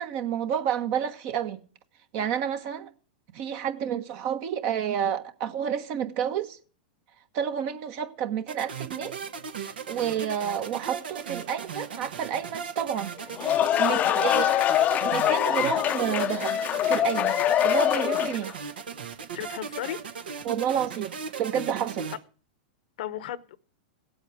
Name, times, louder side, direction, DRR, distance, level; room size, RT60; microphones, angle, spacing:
voice 1, 0.0-1.6 2.1-2.9 3.3-6.6 7.3-9.2 9.9-13.1 13.8-14.5 15.0-16.5 16.8-17.4 17.6-18.5 20.4-22.1, right 9 dB, 50° right, 1.3 m, -29 dB
sound 1, 8.5-22.2, right 6 dB, 80° right, 1.2 m, -37 dB
sound 2, 13.2-18.5, left 11 dB, 30° left, 0.6 m, -24 dB
voice 2, 13.8-14.6 19.3-20.0 23.0-23.6, left 12 dB, 65° left, 0.9 m, -34 dB
16.5 x 8.1 x 4.8 m
hypercardioid pair, 110°, 5 cm